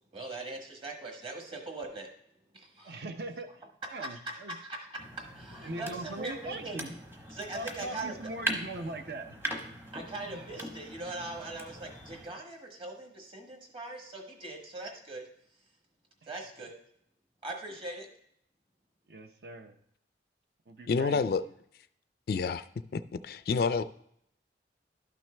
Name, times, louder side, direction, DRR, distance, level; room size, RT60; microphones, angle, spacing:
voice 1, 0.1-2.1 2.5-3.0 4.5-6.8 7.3-8.1 9.9-15.3 16.3-16.7 17.4-18.1, right 2 dB, 30° right, 2 dB, 1.4 m, -41 dB
voice 2, 2.8-4.6 5.6-6.9 7.5-9.4 10.2-10.4 19.1-19.8 20.7-21.5, right 2 dB, 60° right, 7 dB, 0.6 m, -41 dB
sound 1, 5.0-12.3, right 1 dB, 15° right, 0.9 m, -41 dB
voice 3, 20.9-21.4 22.3-22.6 22.9-23.8, left 5 dB, 55° left, 13 dB, 0.3 m, -28 dB
12.0 x 6.1 x 3.3 m, 0.71 s
head